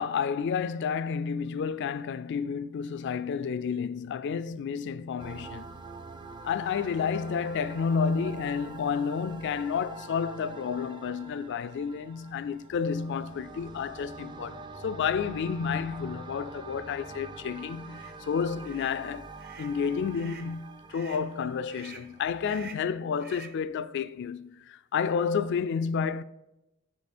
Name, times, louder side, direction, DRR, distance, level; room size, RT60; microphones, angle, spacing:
voice 1, 0.0-5.7 6.4-14.6 14.8-19.3 19.6-26.2, left 6 dB, 55° left, 0.3 m, -30 dB
sound 1, 5.2-22.6, right 3 dB, 20° right, 0.4 m, -45 dB
sound 2, 17.8-18.1 18.6-19.0 19.4-19.7 20.1-20.5 20.9-21.3 21.7-22.1 22.4-22.9 23.2-23.6, right 5 dB, 50° right, 0.9 m, -48 dB
8.4 x 5.1 x 4.2 m
head